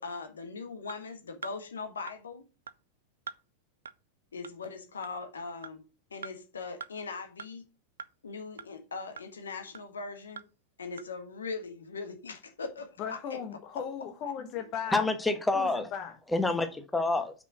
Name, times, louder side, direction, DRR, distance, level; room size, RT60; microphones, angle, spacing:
voice 1, 0.0-2.4 4.3-5.8 6.1-7.6 8.2-10.4 10.8-13.4, left 4 dB, 70° left, 1.4 m, -40 dB
sound 1, 0.9-1.0 1.4-1.6 2.1-2.2 2.7-2.8 3.3-3.4 3.9-4.0 4.4-4.5 5.0-5.1 5.6-5.7 6.2-6.3 6.8-6.9 7.4-7.5 8.0-8.1 8.6-8.7 9.2-9.3 9.7-9.8 10.4-10.5 11.0-11.1, right 6 dB, 70° right, 0.5 m, -42 dB
voice 2, 13.0-15.0 15.5-16.2, left 7 dB, 40° left, 1.0 m, -37 dB
voice 3, 14.9-15.9 16.3-17.3, left 2 dB, 5° left, 1.1 m, -27 dB
6.0 x 6.0 x 6.1 m
figure-of-eight pair, 90°, 0 cm